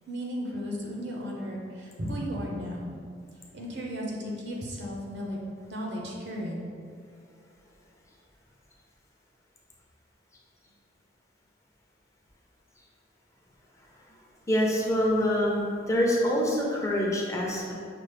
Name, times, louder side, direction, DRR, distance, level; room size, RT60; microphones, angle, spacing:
voice 1, 0.1-3.0 3.5-5.4 5.7-6.6, equal, 70° right, -1 dB, 0.7 m, -34 dB
voice 2, 14.5-17.7, equal, 15° left, -3 dB, 0.6 m, -25 dB
5.8 x 2.0 x 3.2 m, 2.3 s
head